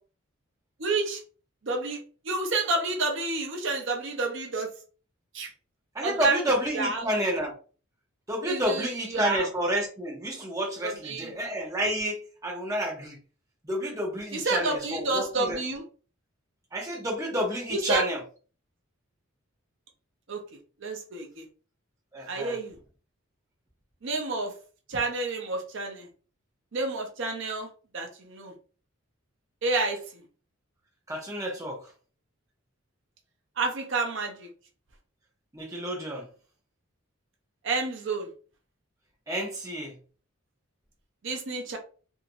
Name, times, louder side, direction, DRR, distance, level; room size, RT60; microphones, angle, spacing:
voice 1, 0.8-1.2 1.6-2.0 2.2-4.7 5.3-5.5 6.0-6.4 6.7-7.1 8.4-9.5 10.8-11.3 14.3-15.8 17.7-18.1 20.3-20.4 20.8-21.5 22.3-22.7 24.0-24.5 24.9-26.1 26.7-27.7 27.9-28.5 29.6-30.2 33.6-34.5 37.6-38.3 41.2-41.8, right 3 dB, 60° right, 2 dB, 0.7 m, -29 dB
voice 2, 5.9-7.5 8.3-13.2 13.6-15.6 16.7-18.2 22.1-22.5 31.1-31.8 35.5-36.3 39.3-39.9, right 1 dB, 15° right, -1 dB, 0.8 m, -30 dB
2.9 x 2.7 x 2.6 m, 0.38 s
head